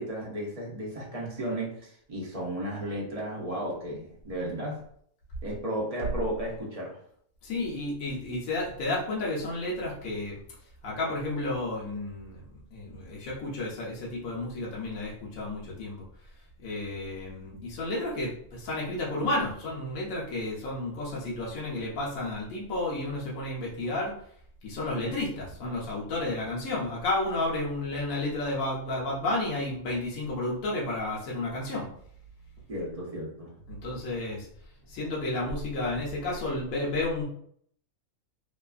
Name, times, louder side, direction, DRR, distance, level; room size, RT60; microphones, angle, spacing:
voice 1, 0.0-4.8 5.4-7.0 32.7-33.5, right 1 dB, 40° right, -3 dB, 0.5 m, -34 dB
voice 2, 7.4-10.4 10.8-12.4 12.7-16.0 16.6-24.1 24.6-31.9 33.7-34.5 34.9-37.2, left 2 dB, 85° left, -5 dB, 1.1 m, -32 dB
2.8 x 2.3 x 2.3 m, 0.63 s
omnidirectional pair, 1.4 m